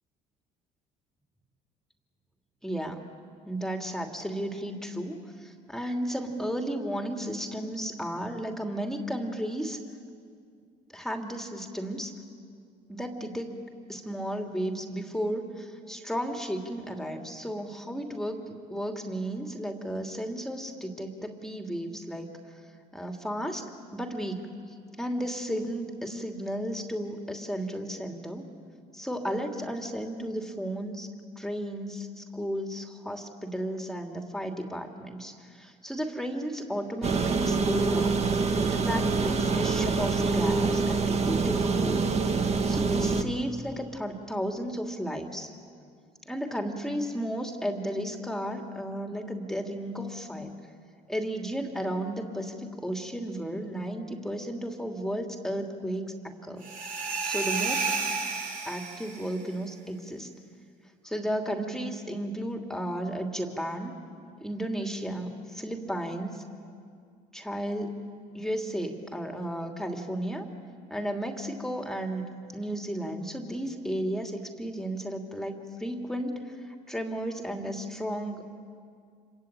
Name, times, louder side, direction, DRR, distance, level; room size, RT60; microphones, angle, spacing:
voice 1, 2.6-3.0 3.4-9.8 10.9-12.1 12.9-13.5 13.9-22.3 22.9-23.6 23.9-24.5 25.0-28.5 28.9-31.1 31.4-38.2 38.6-42.2 42.7-45.5 46.3-50.5 51.1-56.6 57.2-57.9 58.7-60.3 61.0-63.9 64.4-66.4 67.3-67.9 68.3-70.5 70.9-72.2 72.5-78.5, equal, 5° left, 3 dB, 2.8 m, -33 dB
sound 1, 37.0-43.2, right 4 dB, 40° right, 1.9 m, -25 dB
sound 2, 56.6-59.3, right 4 dB, 55° right, 4.5 m, -31 dB
26.5 x 23.5 x 9.0 m, 2.2 s
supercardioid pair, 85°, 17 cm